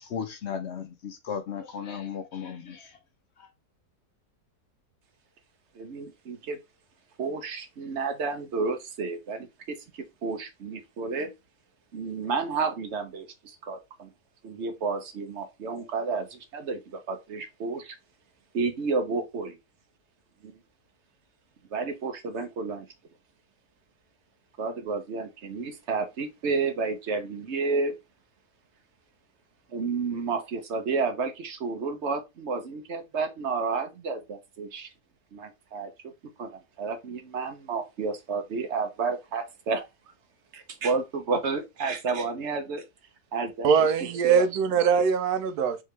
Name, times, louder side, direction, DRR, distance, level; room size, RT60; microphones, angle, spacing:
voice 1, 0.0-2.9 3.4-3.5, left 7 dB, 65° left, 0.6 m, -35 dB
voice 2, 5.7-6.6 7.2-9.8 10.2-11.3 11.9-14.1 14.4-18.0 18.5-19.6 20.4-20.5 21.7-22.9 24.6-27.9 29.7-34.9 35.3-35.9 36.4-39.8 40.5-42.8 43.3-43.9 44.2-44.5, right 4 dB, 55° right, 0.9 m, -31 dB
voice 3, 43.6-45.8, right 6 dB, 75° right, 1.1 m, -22 dB
3.7 x 3.3 x 3.2 m
omnidirectional pair, 1.7 m